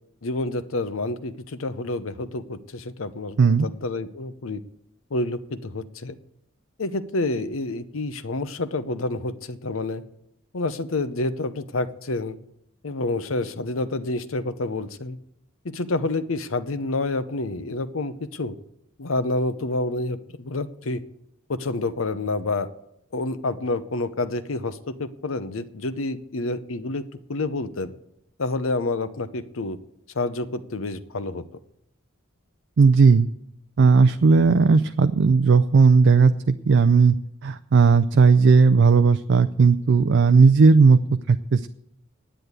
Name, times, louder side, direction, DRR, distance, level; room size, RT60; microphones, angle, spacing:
voice 1, 0.2-4.6 5.1-6.2 6.8-10.0 10.5-12.4 12.8-15.2 15.6-18.5 19.0-21.0 21.5-22.7 23.1-27.0 27.3-27.9 28.4-29.8 30.1-31.4, left 2 dB, 75° left, 12 dB, 0.8 m, -28 dB
voice 2, 32.8-33.3 33.8-37.2 37.4-41.0 41.3-41.7, right 4 dB, 60° right, 10 dB, 0.4 m, -16 dB
10.0 x 9.1 x 8.1 m, 0.78 s
head